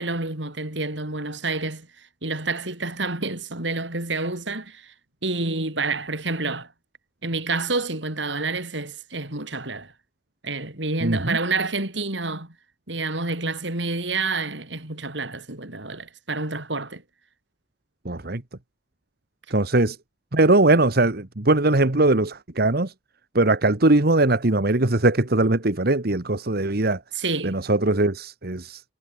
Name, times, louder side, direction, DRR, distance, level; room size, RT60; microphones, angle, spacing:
voice 1, 0.0-1.9 2.2-4.9 5.2-6.7 7.2-9.9 10.4-12.5 12.9-17.0 27.2-27.6, right 3 dB, 70° right, 5.2 m, -28 dB
voice 2, 11.0-11.4 18.1-18.4 19.5-20.0 20.3-22.9 23.4-27.0 27.4-28.8, right 2 dB, 55° right, 1.6 m, -20 dB
head